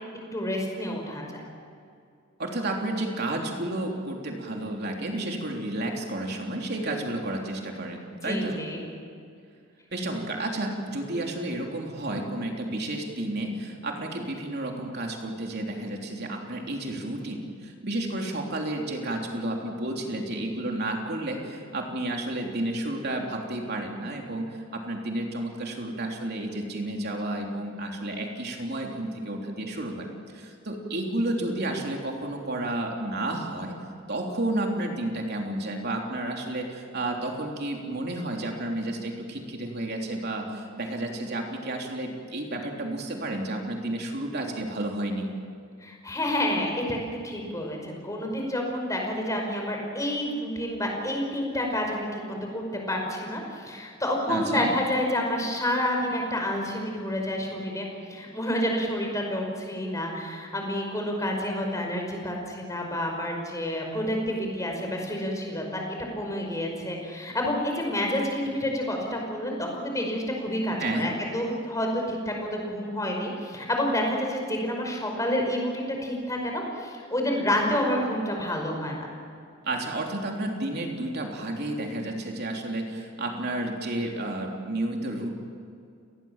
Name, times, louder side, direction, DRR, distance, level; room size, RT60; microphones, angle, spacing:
voice 1, 0.3-1.2 8.2-8.8 45.8-79.1, left 1 dB, 15° left, 1 dB, 5.4 m, -29 dB
voice 2, 2.4-8.6 9.9-33.8 34.1-45.3 54.3-54.7 70.8-71.1 79.6-85.3, right 1 dB, 50° right, 1 dB, 3.4 m, -31 dB
30.0 x 20.0 x 7.4 m, 2.3 s
head